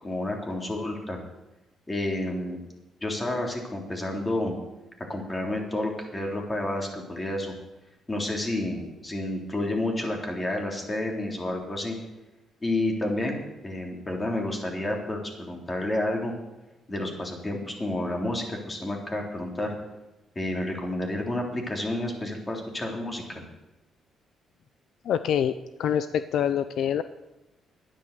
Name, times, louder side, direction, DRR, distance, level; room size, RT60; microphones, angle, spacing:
voice 1, 0.0-1.2 1.9-2.6 3.0-4.5 5.1-7.5 8.1-12.0 12.6-16.3 16.9-19.7 20.3-23.4, left 1 dB, 20° left, 1 dB, 3.3 m, -30 dB
voice 2, 25.0-25.5 25.8-27.0, left 9 dB, 75° left, 12 dB, 0.5 m, -25 dB
11.0 x 10.0 x 6.7 m, 1.0 s
cardioid pair, 90°, 0 cm